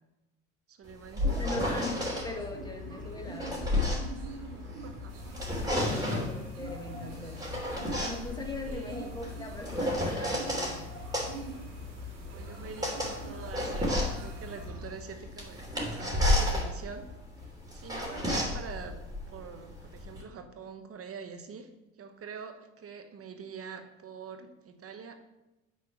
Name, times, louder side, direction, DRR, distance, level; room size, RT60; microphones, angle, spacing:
voice 1, 0.7-1.5 3.4-3.5 4.8-5.2 8.6-9.1 12.3-17.1 17.4-19.0 19.3-21.7 22.0-25.2, right 6 dB, 40° right, 6 dB, 1.2 m, -45 dB
sound 1, 0.9-2.3 3.1-4.9 5.2-6.4 7.1-10.8 11.1-20.2, left 1 dB, 10° right, 3.2 m, -32 dB
voice 2, 1.2-3.6 5.7-7.4 8.0-10.9, left 2 dB, 10° left, 2 dB, 1.6 m, -40 dB
sound 2, 1.8-14.9, left 1 dB, 90° right, 1.9 m, -43 dB
sound 3, 5.1-14.7, right 1 dB, 60° right, 2.7 m, -52 dB
8.5 x 4.4 x 6.2 m, 1.0 s
hypercardioid pair, 80°, 37 cm